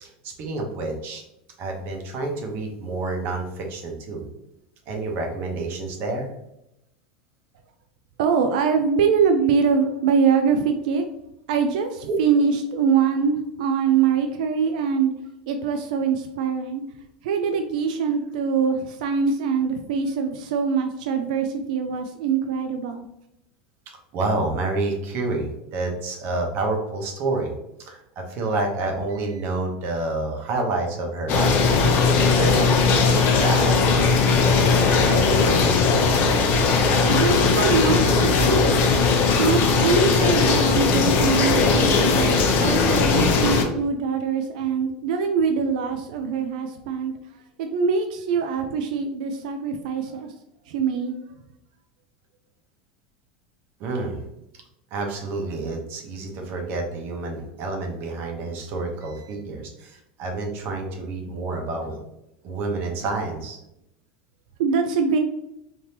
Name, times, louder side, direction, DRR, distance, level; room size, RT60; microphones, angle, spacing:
voice 1, 0.0-1.2 1.6-4.3 4.9-6.3 24.1-27.5 27.8-31.6 32.2-35.6 53.8-54.2 54.9-62.0 62.4-63.6, right 2 dB, 50° right, 2 dB, 0.9 m, -29 dB
voice 2, 8.2-11.0 11.5-15.1 15.5-16.8 17.2-23.0 37.1-38.9 39.4-42.4 42.6-47.1 47.6-50.3 50.7-51.2 64.6-65.2, right 5 dB, 80° right, 6 dB, 0.3 m, -23 dB
sound 1, 31.3-43.6, left 4 dB, 50° left, 0.6 m, -19 dB
3.5 x 2.7 x 2.8 m, 0.84 s
supercardioid pair, 120°, 4 cm